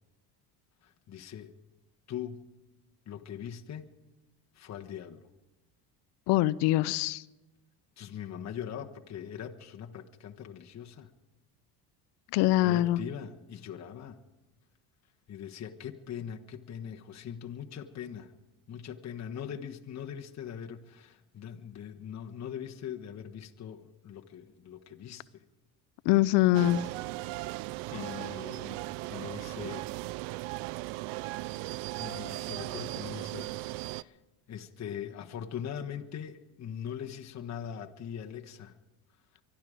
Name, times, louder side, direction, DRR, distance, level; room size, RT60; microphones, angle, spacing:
voice 1, 0.8-1.5 2.1-2.4 3.1-3.9 4.5-5.2 8.0-11.1 12.6-14.2 15.3-18.3 18.7-25.4 27.9-28.8 29.1-29.9 32.0-34.2 34.5-38.8 39.3-39.4, left 8 dB, 40° left, 1.2 m, -41 dB
voice 2, 6.3-7.2 12.3-13.0 26.1-26.8, left 15 dB, 70° left, 0.6 m, -23 dB
sound 1, 26.5-34.0, right 20 dB, 75° right, 0.5 m, -37 dB
24.0 x 11.5 x 5.0 m
supercardioid pair, 90°, 42 cm